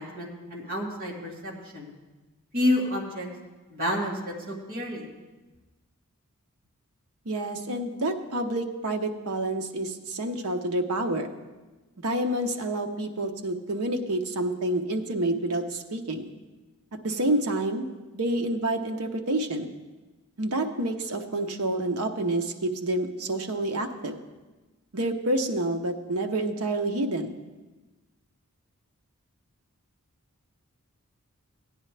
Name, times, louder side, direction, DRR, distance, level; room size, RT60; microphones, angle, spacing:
voice 1, 0.0-1.9 2.5-3.3 3.7-4.1 4.5-5.1, left 1 dB, 45° right, -3 dB, 2.3 m, -29 dB
voice 2, 7.2-11.3 12.0-16.3 17.0-17.9 18.1-19.7 20.4-24.2 24.9-27.4, right 1 dB, 80° right, 5 dB, 0.9 m, -28 dB
16.5 x 9.6 x 3.3 m, 1.2 s
head